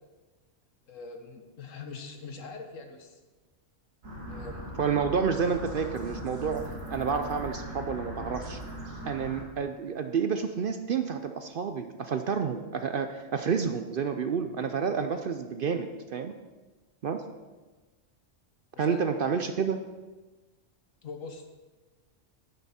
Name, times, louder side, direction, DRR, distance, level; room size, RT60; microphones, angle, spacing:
voice 1, 0.9-3.2 4.3-4.7 15.1-15.2 18.7-19.0 21.0-21.4, left 4 dB, 80° left, 5 dB, 1.5 m, -43 dB
sound 1, 4.0-9.4, right 1 dB, 85° right, 2.5 m, -39 dB
voice 2, 4.8-8.6 9.0-16.3 17.0-17.2 18.8-19.8, right 6 dB, 55° right, 7 dB, 0.6 m, -29 dB
10.5 x 9.9 x 4.3 m, 1.2 s
omnidirectional pair, 1.3 m